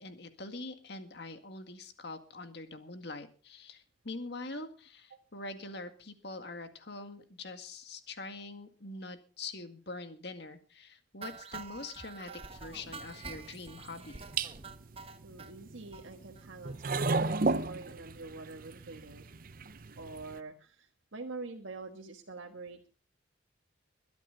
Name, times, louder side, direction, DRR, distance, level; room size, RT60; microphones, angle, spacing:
voice 1, 0.0-14.2, left 3 dB, 60° left, 7 dB, 2.0 m, -44 dB
sound 1, 11.2-15.5 15.9-16.0 16.4-16.5 16.7-16.8 17.1-17.2, right 4 dB, 30° right, 1.2 m, -47 dB
sound 2, 12.5-20.4, right 3 dB, 45° right, 0.7 m, -36 dB
voice 2, 15.2-19.3 20.0-22.9, right 3 dB, 85° right, 2 dB, 1.5 m, -45 dB
22.0 x 10.5 x 3.9 m, 0.37 s
head